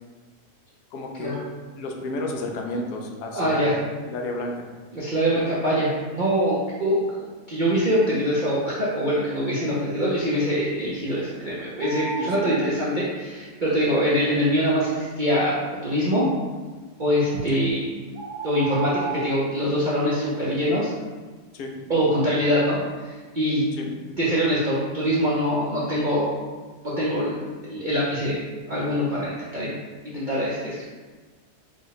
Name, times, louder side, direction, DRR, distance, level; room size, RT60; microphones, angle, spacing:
voice 1, 0.9-1.4 1.7-3.7 4.1-4.7 12.2-12.5 17.5-17.6 21.5-21.8 22.1-22.2 23.7-24.2, left 2 dB, 80° left, 2 dB, 1.2 m, -32 dB
voice 2, 3.3-3.7 4.9-16.3 17.0-17.8 18.4-20.9 21.9-23.7 24.2-26.3 26.8-28.4 28.7-29.7 30.0-30.8, equal, 55° right, -8 dB, 0.5 m, -24 dB
sound 1, 11.8-12.7 17.3-17.5 18.1-19.4, right 5 dB, 85° right, 1.2 m, -33 dB
4.8 x 2.1 x 3.9 m, 1.3 s
omnidirectional pair, 1.7 m